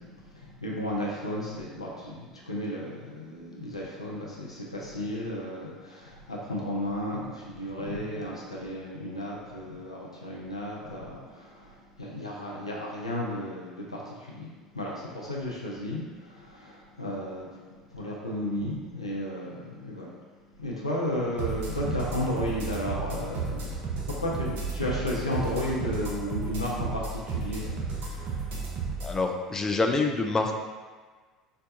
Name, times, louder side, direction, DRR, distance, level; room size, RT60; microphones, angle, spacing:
voice 1, 0.3-17.5 17.9-20.1 20.6-28.4, left 1 dB, 90° left, -4 dB, 0.4 m, -33 dB
sound 1, 21.4-29.1, right 4 dB, 50° right, 0.7 m, -33 dB
voice 2, 29.0-30.5, left 3 dB, 15° left, 3 dB, 0.4 m, -26 dB
4.0 x 2.2 x 2.6 m, 1.4 s
figure-of-eight pair, 65°, 3 cm